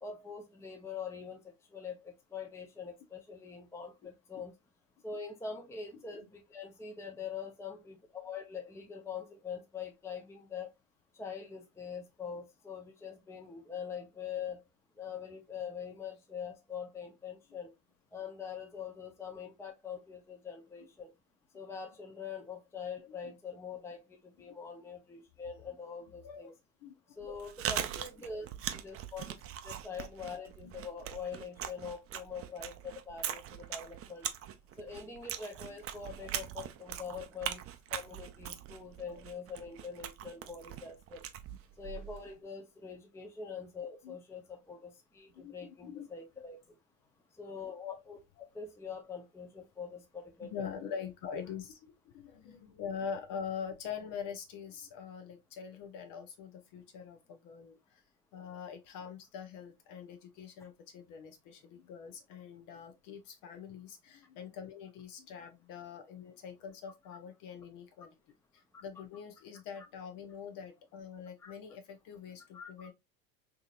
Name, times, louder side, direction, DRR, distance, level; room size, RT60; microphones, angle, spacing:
voice 1, 0.0-4.5 5.0-10.7 11.1-14.6 15.0-17.7 18.1-21.1 21.5-26.5 27.2-29.4 29.6-34.3 34.8-37.6 37.9-41.2 41.8-46.6 47.4-48.2 48.5-50.7 65.4-65.5 69.8-69.9 71.4-71.5 72.5-72.7, left 6 dB, 5° left, 0.6 m, -44 dB
voice 2, 26.8-27.4 30.6-30.7 39.0-39.2 44.0-44.2 45.3-46.1 48.4-48.5 50.4-58.0 58.3-68.1 68.5-72.9, left 7 dB, 55° left, 0.8 m, -44 dB
Chewing mastication, 27.2-42.3, right 10 dB, 35° right, 0.5 m, -41 dB
3.6 x 2.9 x 2.4 m
hypercardioid pair, 85°, 40 cm